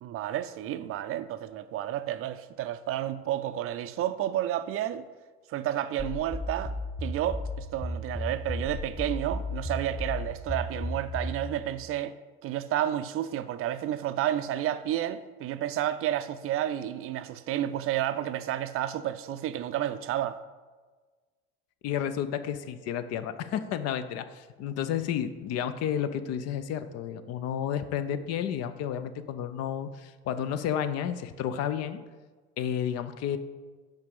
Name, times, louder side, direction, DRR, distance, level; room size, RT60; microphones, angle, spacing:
voice 1, 0.0-5.0 5.5-6.7 7.0-12.1 12.4-20.4, right 12 dB, 45° right, 0.4 m, -31 dB
sound 1, 6.0-11.5, left 1 dB, 15° left, 1.2 m, -34 dB
voice 2, 21.8-32.0 32.6-33.4, left 9 dB, 55° left, 0.5 m, -31 dB
5.3 x 5.2 x 5.2 m
hypercardioid pair, 65°, 31 cm